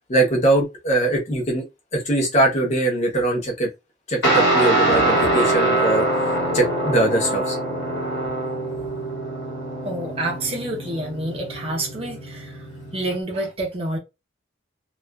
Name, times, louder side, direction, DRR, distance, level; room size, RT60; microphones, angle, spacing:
voice 1, 0.1-1.6 1.9-3.7 4.1-6.0 6.5-7.6, right 2 dB, 35° left, 0.8 m, -21 dB
Guitar, 4.2-13.1, right 2 dB, 65° left, 1.0 m, -24 dB
voice 2, 9.8-12.5 12.9-14.0, right 1 dB, 30° right, 0.7 m, -28 dB
2.4 x 2.4 x 2.2 m
head